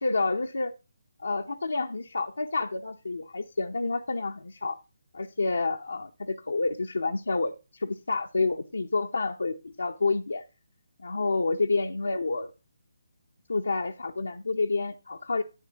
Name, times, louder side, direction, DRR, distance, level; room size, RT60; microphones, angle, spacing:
voice 1, 0.0-0.7 1.2-4.8 5.1-10.4 11.0-12.5 13.5-15.4, left 3 dB, 75° left, 3 dB, 0.6 m, -29 dB
10.0 x 9.0 x 2.9 m, 0.30 s
figure-of-eight pair, 150°, 0 cm